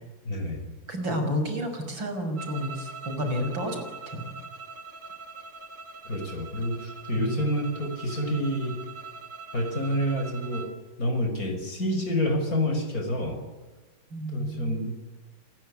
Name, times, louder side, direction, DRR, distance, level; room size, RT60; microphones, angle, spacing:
voice 1, 0.2-0.7 6.0-8.8 9.5-10.7 11.0-13.4 14.3-14.9, equal, 45° left, 6 dB, 6.0 m, -28 dB
voice 2, 0.9-4.2 7.2-7.3 14.1-14.7, equal, 75° right, 6 dB, 6.7 m, -31 dB
sound 1, 2.3-10.8, right 4 dB, 40° right, 3.0 m, -43 dB
28.5 x 21.0 x 10.0 m, 1.2 s
omnidirectional pair, 2.1 m